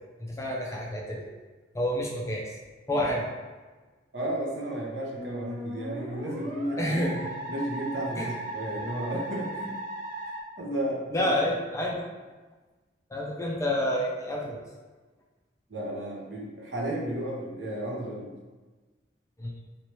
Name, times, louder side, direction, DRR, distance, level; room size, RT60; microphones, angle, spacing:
voice 1, 0.2-1.3 1.7-2.6 2.9-3.3 6.8-7.3 8.2-8.3 11.1-12.0 13.1-14.6 19.4-19.5, left 1 dB, 15° left, -2 dB, 0.4 m, -29 dB
voice 2, 4.1-7.1 7.5-9.7 10.6-11.3 15.7-18.3, right 1 dB, 65° right, -3 dB, 0.9 m, -33 dB
Musical instrument, 5.2-10.4, right 1 dB, 40° right, 0.6 m, -37 dB
3.0 x 3.0 x 2.9 m, 1.3 s
head